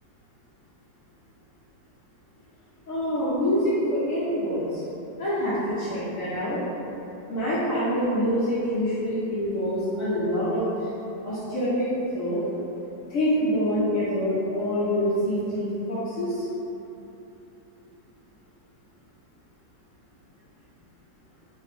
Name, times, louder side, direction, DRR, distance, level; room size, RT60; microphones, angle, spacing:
voice 1, 2.9-4.9 5.2-6.6 7.3-10.9 11.2-11.9 12.1-12.4 13.1-16.5, equal, 60° left, -10 dB, 1.0 m, -26 dB
3.6 x 2.4 x 4.1 m, 3.0 s
omnidirectional pair, 1.9 m